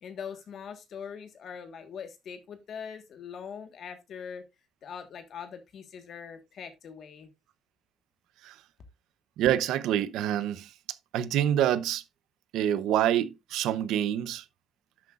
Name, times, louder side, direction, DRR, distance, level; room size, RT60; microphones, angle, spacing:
voice 1, 0.0-4.4 4.8-7.3, left 7 dB, 50° left, 1.5 m, -42 dB
voice 2, 9.4-10.7 11.1-12.0 12.5-14.4, right 11 dB, 90° right, 0.8 m, -26 dB
10.5 x 8.0 x 2.5 m
cardioid pair, 155°, 0 cm